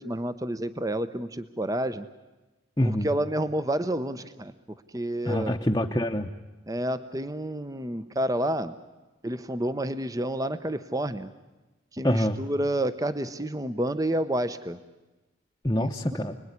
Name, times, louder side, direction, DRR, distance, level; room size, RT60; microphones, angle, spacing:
voice 1, 0.0-2.1 2.8-4.5 4.9-5.6 6.7-8.8 9.2-11.3 11.9-14.8 15.8-15.9, right 1 dB, 20° right, 12 dB, 0.8 m, -29 dB
voice 2, 2.8-3.1 5.2-6.3 12.0-12.4 15.6-16.4, equal, 15° left, 2 dB, 0.9 m, -25 dB
29.5 x 21.0 x 9.8 m, 1.1 s
head